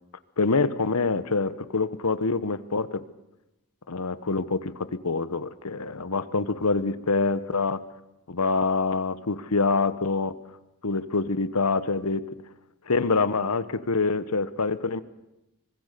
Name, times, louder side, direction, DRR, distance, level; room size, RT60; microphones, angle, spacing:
voice 1, 0.4-3.0 3.9-7.8 8.3-10.3 10.8-12.2 12.9-15.0, left 4 dB, 85° left, 14 dB, 1.1 m, -25 dB
25.5 x 21.0 x 6.8 m, 0.92 s
head